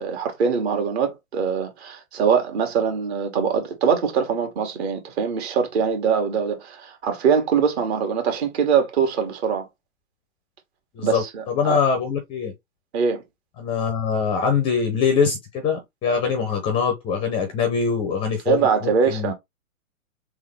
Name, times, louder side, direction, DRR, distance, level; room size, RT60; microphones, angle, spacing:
voice 1, 0.0-9.7 11.0-11.8 12.9-13.2 18.5-19.3, right 6 dB, 50° right, 1.7 m, -23 dB
voice 2, 10.9-12.5 13.6-19.3, left 6 dB, 15° left, 0.5 m, -23 dB
3.6 x 3.0 x 3.4 m
hypercardioid pair, 120°, 41 cm